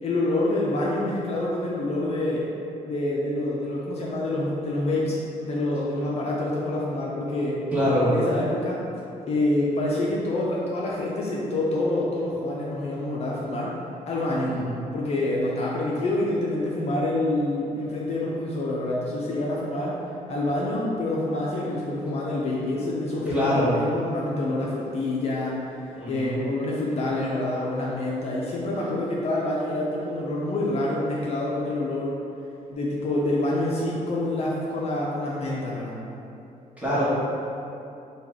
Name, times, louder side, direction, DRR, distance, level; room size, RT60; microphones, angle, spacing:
voice 1, 0.0-2.5 2.8-7.6 8.0-8.9 9.3-13.7 14.1-14.6 14.9-20.0 20.3-25.6 26.1-32.2 32.7-36.0, left 1 dB, 50° left, -4 dB, 0.4 m, -27 dB
voice 2, 7.7-8.1 14.5-14.8 23.3-23.7 26.0-26.5 36.8-37.0, equal, 10° right, -11 dB, 1.0 m, -24 dB
3.2 x 2.2 x 3.5 m, 2.7 s
wide cardioid pair, 155°, 14 cm